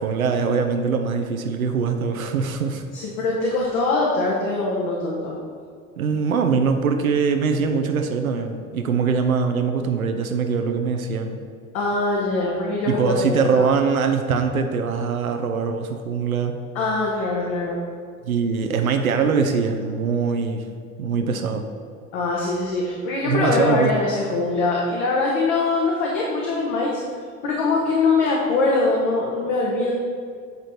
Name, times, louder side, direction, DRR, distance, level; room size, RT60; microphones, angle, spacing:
voice 1, 0.0-2.8 6.0-11.4 12.9-16.6 18.2-20.7 21.0-21.6 23.2-23.9, right 5 dB, 80° right, 5 dB, 0.6 m, -22 dB
voice 2, 2.9-5.4 11.7-13.7 16.7-17.8 22.1-26.9 27.4-29.9, left 3 dB, 50° left, -3 dB, 1.3 m, -22 dB
8.1 x 4.9 x 4.3 m, 2.2 s
figure-of-eight pair, 70°, 42 cm